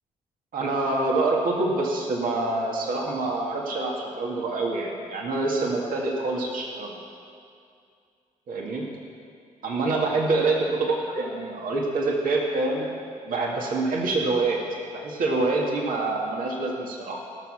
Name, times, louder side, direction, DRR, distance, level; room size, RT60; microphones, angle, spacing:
voice 1, 0.5-6.9 8.5-8.9 9.6-12.9 13.2-14.6 14.9-17.2, right 2 dB, 75° right, -1 dB, 2.0 m, -26 dB
18.0 x 6.7 x 6.2 m, 2.3 s
supercardioid pair, 55°, 15 cm